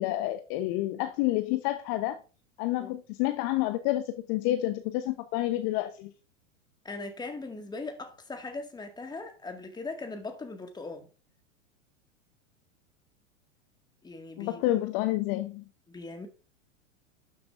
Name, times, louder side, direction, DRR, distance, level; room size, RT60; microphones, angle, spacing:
voice 1, 0.0-2.2 2.6-6.1 14.4-15.6, left 15 dB, 45° left, 0.8 m, -29 dB
voice 2, 6.9-11.1 14.0-14.6 15.9-16.3, left 3 dB, 10° left, 1.8 m, -39 dB
12.0 x 6.9 x 2.5 m
hypercardioid pair, 100°, 38 cm